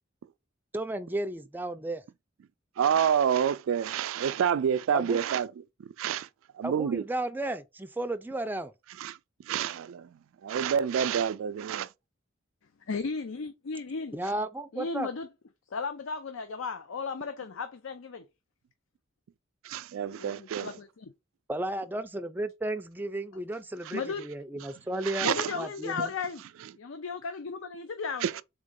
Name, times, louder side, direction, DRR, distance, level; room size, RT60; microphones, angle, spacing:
voice 1, 0.7-2.0 4.9-5.2 6.6-8.7 14.1-15.1 21.5-25.3 25.6-26.1, right 1 dB, 10° right, 0.4 m, -33 dB
voice 2, 2.8-5.5 6.0-6.3 6.6-7.0 9.0-9.2 9.5-10.1 10.4-11.9 19.6-20.7 25.0-25.5 28.2-28.4, right 8 dB, 85° right, 0.3 m, -28 dB
voice 3, 12.9-14.1 14.7-15.3 15.7-18.3 20.1-21.1 23.9-24.2 25.2-26.4 26.7-28.3, left 5 dB, 80° left, 0.5 m, -35 dB
3.7 x 3.7 x 3.7 m
head